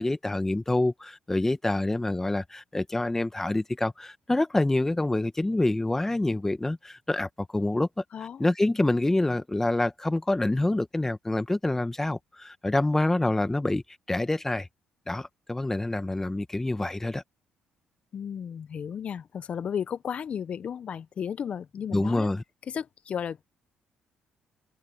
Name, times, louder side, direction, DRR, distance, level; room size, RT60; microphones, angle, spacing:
voice 1, 0.0-8.0 8.4-13.8 14.1-14.7 15.1-17.2 21.9-22.4, left 2 dB, 15° left, 1.7 m, -26 dB
voice 2, 8.1-8.4 18.1-22.3 22.7-23.4, left 8 dB, 55° left, 1.1 m, -34 dB
open air
supercardioid pair, 60°, 3 cm